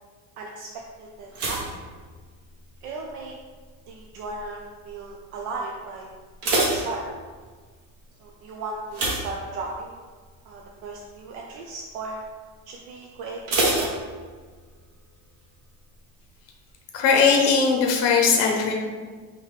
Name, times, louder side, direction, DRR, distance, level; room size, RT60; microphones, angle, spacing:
voice 1, 0.4-0.7 1.0-1.6 2.8-3.4 3.9-6.1 6.5-7.0 8.2-10.1 10.4-12.2 12.7-14.0, right 3 dB, 80° right, -1 dB, 0.6 m, -36 dB
sound 1, 1.3-2.8 3.1-3.6 4.2-4.6 4.8-4.9 5.3-5.4 6.1-7.6 8.9-10.0 10.4-10.7 11.0-11.1 13.5-14.7 14.9-15.0, right 2 dB, 35° right, 0.8 m, -27 dB
voice 2, 16.9-18.7, left 5 dB, 35° left, 1 dB, 0.7 m, -19 dB
4.8 x 3.1 x 3.2 m, 1.5 s
cardioid pair, 170°, 41 cm